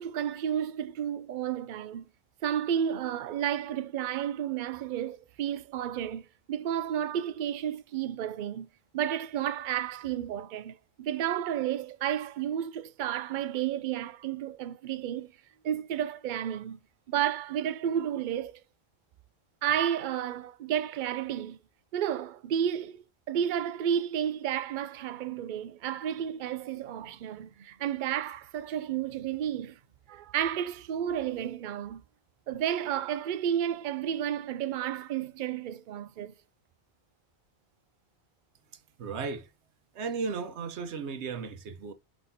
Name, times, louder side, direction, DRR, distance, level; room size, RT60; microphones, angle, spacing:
voice 1, 0.0-2.1 2.4-8.7 8.9-15.3 15.6-16.8 17.1-18.6 19.6-21.6 21.9-29.8 30.1-32.0 32.5-36.3, right 10 dB, 55° right, 0.6 m, -32 dB
voice 2, 39.0-39.5 39.9-41.9, right 5 dB, 85° right, 1.1 m, -35 dB
4.7 x 4.1 x 2.7 m
omnidirectional pair, 1.1 m